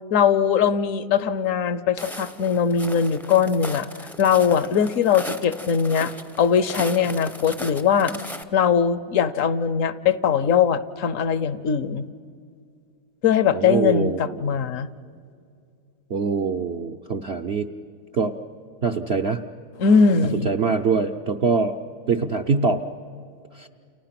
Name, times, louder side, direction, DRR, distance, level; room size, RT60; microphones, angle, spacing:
voice 1, 0.1-3.9 4.2-6.1 6.4-8.1 8.5-12.0 13.2-14.9 19.8-20.5, left 7 dB, 60° left, 15 dB, 0.9 m, -20 dB
Walk footsteps, 2.0-8.4, equal, ahead, 0.5 m, -37 dB
voice 2, 13.5-14.6 16.1-17.7 18.1-18.3 18.8-19.4 20.4-21.7 22.1-22.8 23.5-23.7, right 5 dB, 60° right, 6 dB, 0.7 m, -24 dB
30.0 x 29.5 x 5.9 m, 2.3 s
omnidirectional pair, 2.0 m